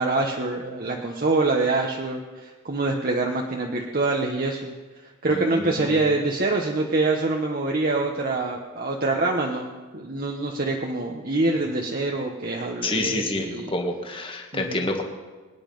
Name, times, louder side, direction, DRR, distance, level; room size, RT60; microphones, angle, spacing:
voice 1, 0.0-4.7 5.2-9.7 9.9-13.7 14.5-14.8, right 2 dB, 45° right, 1 dB, 1.1 m, -25 dB
voice 2, 5.3-6.0 12.8-15.0, left 2 dB, 25° left, 3 dB, 1.7 m, -28 dB
23.5 x 9.9 x 5.4 m, 1.3 s
head